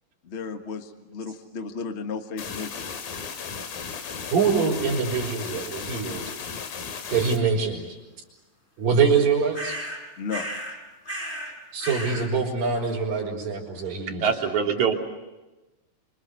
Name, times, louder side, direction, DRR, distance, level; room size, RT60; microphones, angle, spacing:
voice 1, 0.2-3.0 10.2-10.5, left 5 dB, 55° left, 6 dB, 0.7 m, -34 dB
sound 1, 2.4-7.4, left 6 dB, 85° left, 4.1 m, -35 dB
voice 2, 4.3-6.2 7.1-7.9 8.8-9.8 11.7-14.3, right 5 dB, 75° right, -4 dB, 6.2 m, -24 dB
sound 2, 9.5-10.0 10.3-10.8 11.1-11.5 11.8-12.3, equal, 15° left, 4.9 m, -33 dB
voice 3, 13.9-14.9, right 6 dB, 55° right, 2 dB, 4.1 m, -24 dB
27.5 x 25.5 x 8.0 m, 1.1 s
omnidirectional pair, 4.0 m